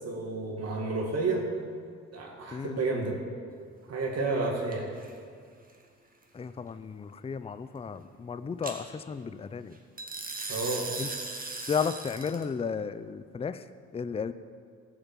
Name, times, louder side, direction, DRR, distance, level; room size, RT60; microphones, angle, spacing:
voice 1, 0.0-1.4 2.1-3.2 3.9-4.9 10.5-10.9, right 3 dB, 55° right, 0 dB, 2.2 m, -31 dB
sound 1, 4.7-5.1 8.6-8.8 10.0-12.4, right 3 dB, 30° right, 1.9 m, -37 dB
voice 2, 6.3-9.8 11.0-11.1 11.7-13.6 13.9-14.3, left 6 dB, 20° left, 13 dB, 0.5 m, -33 dB
14.0 x 6.9 x 7.4 m, 2.1 s
cardioid pair, 90°, 30 cm